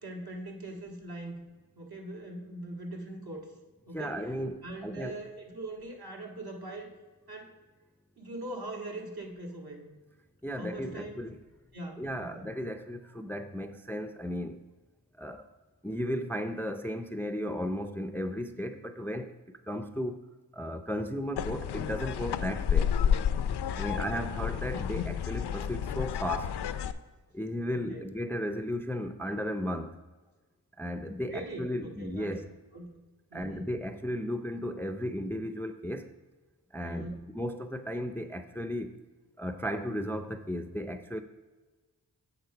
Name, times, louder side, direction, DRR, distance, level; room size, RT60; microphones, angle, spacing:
voice 1, 0.0-1.4 1.8-3.5 3.9-4.2 4.6-6.9 7.3-7.6 8.2-9.9 10.6-11.2 11.7-12.5 23.9-24.3 27.7-28.0 31.3-32.3 32.7-32.9 33.3-33.6 36.8-37.2, right 1 dB, 65° right, 1 dB, 1.8 m, -41 dB
voice 2, 3.9-5.2 10.4-11.4 12.0-14.6 15.2-15.5 15.8-20.2 20.5-22.9 23.8-26.6 27.3-30.0 30.8-32.5 33.3-36.1 36.7-37.1 37.3-39.0 39.4-41.2, equal, 5° left, 9 dB, 0.5 m, -35 dB
sound 1, 21.4-26.9, left 8 dB, 75° left, 0.5 m, -30 dB
8.0 x 3.9 x 5.7 m, 1.3 s
cardioid pair, 40°, 41 cm